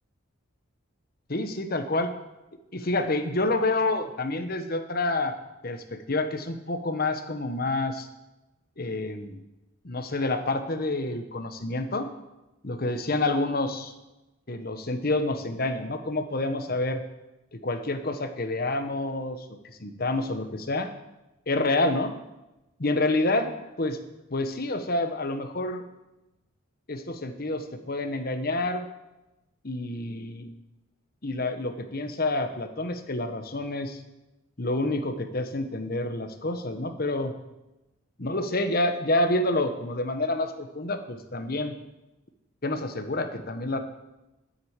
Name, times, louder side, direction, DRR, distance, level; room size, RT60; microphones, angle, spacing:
voice 1, 1.3-2.1 2.7-5.3 5.6-8.1 8.8-9.4 9.8-12.1 12.6-13.9 14.5-17.0 17.5-20.9 21.5-22.2 22.8-24.0 24.3-25.8 26.9-28.9 29.6-30.5 31.2-34.0 34.6-37.3 38.2-41.8 42.6-43.8, left 2 dB, 45° left, 7 dB, 1.2 m, -28 dB
9.9 x 8.0 x 8.8 m, 1.0 s
head